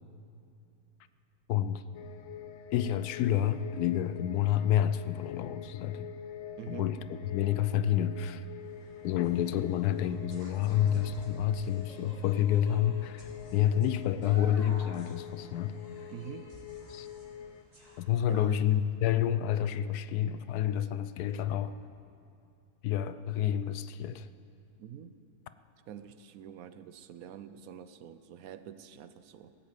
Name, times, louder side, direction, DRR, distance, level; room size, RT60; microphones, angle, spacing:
voice 1, 1.5-1.8 2.7-6.1 6.7-8.4 9.0-15.7 16.9-17.1 18.0-21.7 22.8-24.3, left 10 dB, 85° left, 13 dB, 1.1 m, -29 dB
sound 1, 1.9-17.6, left 8 dB, 60° left, 0.9 m, -46 dB
voice 2, 6.6-6.9 16.1-16.5 18.3-18.6 24.8-25.2 25.9-29.6, right 9 dB, 70° right, 12 dB, 1.1 m, -46 dB
sound 2, 8.6-18.8, equal, 20° right, 3.1 m, -51 dB
17.0 x 8.3 x 8.2 m, 2.5 s
omnidirectional pair, 1.6 m